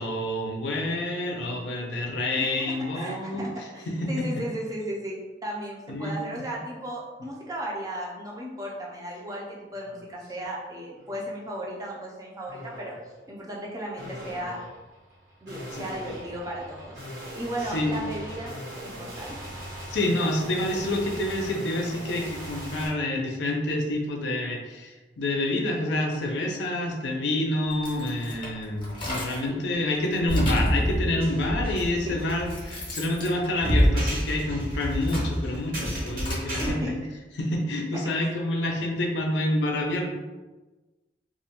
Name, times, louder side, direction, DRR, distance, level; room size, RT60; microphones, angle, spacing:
voice 1, 0.0-3.4 3.9-4.3 5.9-6.4 15.7-15.9 17.7-17.9 19.9-36.8 37.4-40.0, left 1 dB, 70° left, 1 dB, 0.5 m, -28 dB
voice 2, 2.4-12.9 13.3-14.6 15.4-18.5 18.8-19.4 29.5-29.6 32.0-32.4 36.5-36.9 37.9-38.0, equal, 20° right, -3 dB, 0.4 m, -35 dB
sound 1, 9.1-9.3 9.7-10.5 11.0-11.4 12.5-13.1 14.0-22.9, equal, 90° right, 1.2 m, -40 dB
sound 2, 27.7-29.6 30.0-30.8 31.7-31.8 32.2-34.4 34.8-36.5, left 1 dB, 30° left, 0.6 m, -37 dB
sound 3, 30.3-36.7, equal, 50° right, 0.6 m, -27 dB
2.4 x 2.1 x 2.9 m, 1.2 s
head